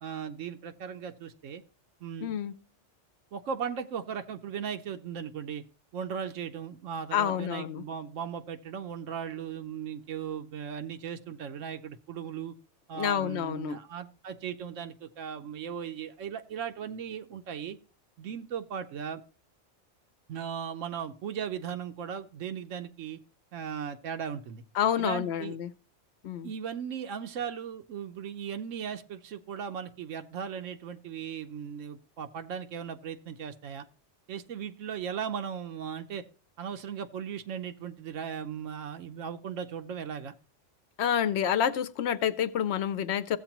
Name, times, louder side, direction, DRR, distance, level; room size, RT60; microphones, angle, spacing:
voice 1, 0.0-1.6 2.0-2.3 3.3-5.6 5.9-12.5 12.9-17.8 18.2-19.2 20.3-23.2 23.5-24.6 25.0-25.5 26.4-33.9 34.3-36.2 36.6-40.3, right 7 dB, 85° right, 1.1 m, -37 dB
voice 2, 2.2-2.5 7.1-7.8 12.9-13.8 24.7-25.7 26.2-26.5 41.0-43.4, left 9 dB, 65° left, 0.9 m, -28 dB
15.0 x 8.1 x 2.9 m
omnidirectional pair, 1.3 m